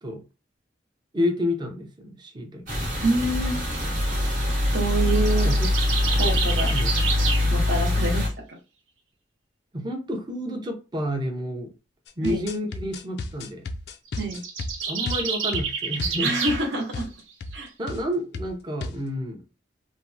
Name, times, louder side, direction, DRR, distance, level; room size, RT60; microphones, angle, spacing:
voice 1, 1.1-2.8 5.5-5.7 6.7-6.9 9.7-11.7 12.2-13.6 14.9-16.3 17.8-19.4, left 1 dB, 25° right, 3 dB, 0.6 m, -30 dB
sound 1, 2.7-8.3, left 1 dB, 45° right, 1.0 m, -23 dB
voice 2, 3.0-3.6 4.7-5.5 6.2-6.7 7.5-8.3 12.2-12.4 14.2-14.4 16.2-17.0 17.5-17.7, right 2 dB, 70° right, -1 dB, 0.9 m, -26 dB
sound 2, 5.1-7.5 14.1-16.6, right 5 dB, 90° right, 0.7 m, -29 dB
sound 3, 12.1-16.7 16.9-17.1 17.4-17.6 17.9-18.1 18.3-19.0, left 2 dB, 60° left, 0.3 m, -34 dB
3.2 x 2.0 x 2.6 m, 0.30 s
head